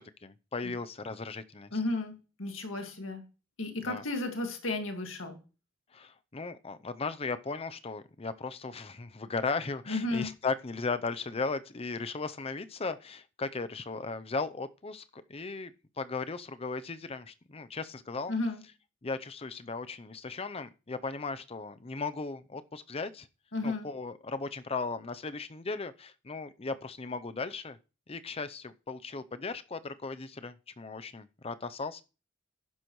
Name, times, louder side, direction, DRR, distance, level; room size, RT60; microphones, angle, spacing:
voice 1, 0.0-1.8 3.8-4.0 5.9-18.3 19.0-23.3 23.6-27.8 28.1-32.0, left 4 dB, 30° left, 0.6 m, -37 dB
voice 2, 1.7-3.2 3.6-5.4 9.9-10.3 18.3-18.6 23.5-23.9, left 2 dB, 75° left, 2.0 m, -33 dB
11.5 x 10.5 x 3.1 m
head